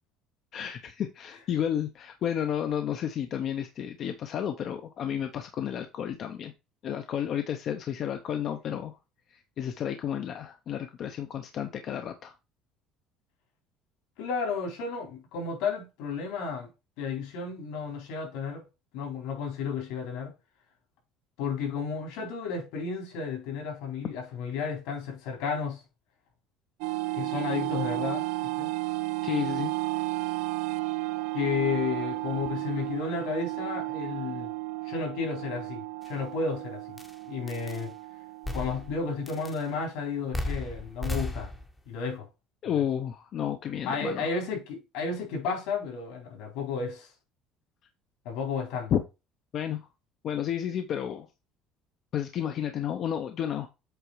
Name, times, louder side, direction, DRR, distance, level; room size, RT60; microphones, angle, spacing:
voice 1, 0.5-6.5 6.8-9.0 9.3-12.3 29.2-29.7 42.6-44.3 48.9-49.0 49.5-49.9 50.2-51.3 52.1-53.7, left 9 dB, 40° left, 0.7 m, -31 dB
voice 2, 14.2-16.7 17.0-18.6 18.9-20.3 21.4-25.8 27.1-28.3 28.6-28.7 31.3-34.5 34.8-37.0 37.3-37.9 38.5-41.5 41.9-42.3 43.9-47.1 48.2-48.9, left 5 dB, 75° left, 4.0 m, -32 dB
sound 1, 26.8-39.9, right 21 dB, 90° right, 0.4 m, -33 dB
sound 2, 36.0-36.1 37.0-37.1 37.5-37.8 38.4-39.0 39.3-39.6 40.3-41.8, left 2 dB, 5° left, 0.8 m, -34 dB
8.0 x 3.7 x 4.8 m
cardioid pair, 175°, 0 cm